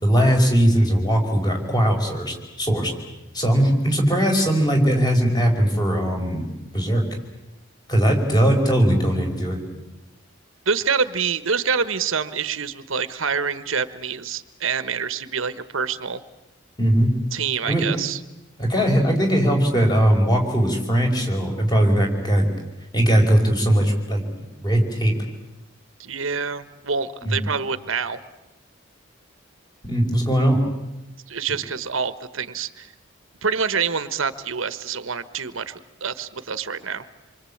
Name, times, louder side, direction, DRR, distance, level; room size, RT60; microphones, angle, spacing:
voice 1, 0.0-2.9 3.3-6.5 6.7-7.1 7.9-9.6 16.8-17.1 17.7-17.8 18.6-22.5 22.9-24.2 24.6-25.1 27.2-27.4 29.8-30.6, equal, 20° left, 2 dB, 5.3 m, -19 dB
voice 2, 10.7-16.2 17.3-18.2 26.0-28.2 31.3-32.9 33.4-37.1, right 6 dB, 80° right, 13 dB, 1.3 m, -26 dB
27.5 x 24.0 x 8.7 m, 0.98 s
head